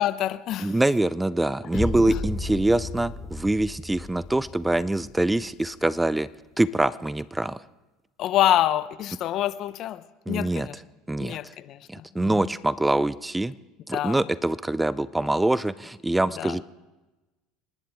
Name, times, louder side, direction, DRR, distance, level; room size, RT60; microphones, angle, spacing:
voice 1, 0.0-0.8 1.7-2.2 8.2-10.8 11.2-12.5 13.9-14.2 16.4-16.6, left 13 dB, 55° left, 15 dB, 0.7 m, -27 dB
voice 2, 0.6-6.3 6.6-7.6 10.3-10.7 11.1-11.4 11.9-13.5 13.9-16.6, right 2 dB, 10° right, 18 dB, 0.4 m, -24 dB
sound 1, 1.7-5.7, left 2 dB, 15° left, 1.4 m, -34 dB
29.0 x 11.5 x 3.5 m, 1.1 s
supercardioid pair, 100°, 0 cm